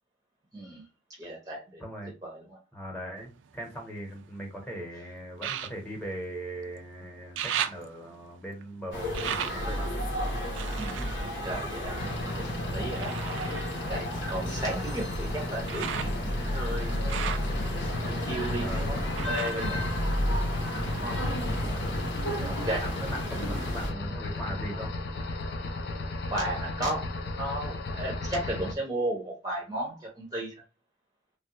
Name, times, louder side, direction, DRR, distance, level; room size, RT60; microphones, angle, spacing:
voice 1, 0.5-0.9 1.2-1.8 2.2-2.6 10.8-12.0 12.3-12.5 12.7-13.1 13.9-17.3 18.2-19.8 21.0-21.2 21.9-22.2 22.5-22.9 26.3-30.6, right 1 dB, 20° right, 0.6 m, -35 dB
voice 2, 1.8-2.1 2.7-9.9 14.6-14.7 18.5-19.1 20.9-21.4 22.4-24.9, equal, 5° left, 0.9 m, -40 dB
sound 1, 3.2-4.5 5.3-6.9 7.1-12.3 12.9-20.8 21.1-21.9 22.4-22.5, right 9 dB, 85° right, 0.3 m, -38 dB
sound 2, 8.9-23.9, equal, 90° left, 1.0 m, -32 dB
sound 3, 12.0-28.7, left 2 dB, 65° left, 0.5 m, -35 dB
3.2 x 2.3 x 2.8 m
head